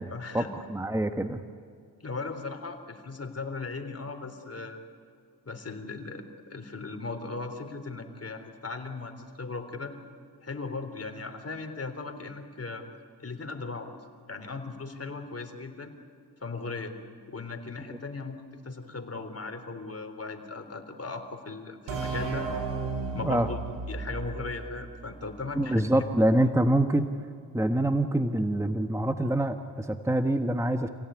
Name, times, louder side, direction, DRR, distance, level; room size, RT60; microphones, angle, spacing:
voice 1, 0.1-0.5 2.0-4.8 5.5-9.9 10.4-12.8 13.2-13.9 14.3-15.9 16.4-17.0 17.3-18.4 18.6-22.5 23.1-23.6 23.9-25.8, left 3 dB, 35° left, 6 dB, 3.7 m, -37 dB
voice 2, 0.7-1.4 17.9-18.0 23.2-23.5 25.6-27.1 27.5-30.9, right 1 dB, 5° right, 7 dB, 1.3 m, -25 dB
sound 1, 21.9-25.4, right 4 dB, 85° right, 4.9 m, -34 dB
27.5 x 17.0 x 9.7 m, 2.3 s
cardioid pair, 60°, 42 cm